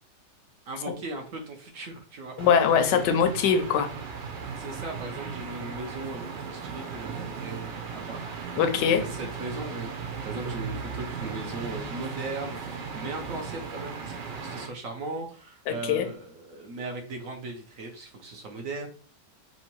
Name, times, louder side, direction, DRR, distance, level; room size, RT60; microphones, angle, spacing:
voice 1, 0.7-2.4 4.6-18.9, right 2 dB, 55° right, 1.1 m, -38 dB
voice 2, 2.4-3.9 8.6-9.1 15.7-16.1, left 7 dB, 80° left, 1.3 m, -22 dB
sound 1, 2.4-14.7, right 5 dB, 85° right, 1.5 m, -37 dB
3.6 x 2.9 x 4.4 m
omnidirectional pair, 1.9 m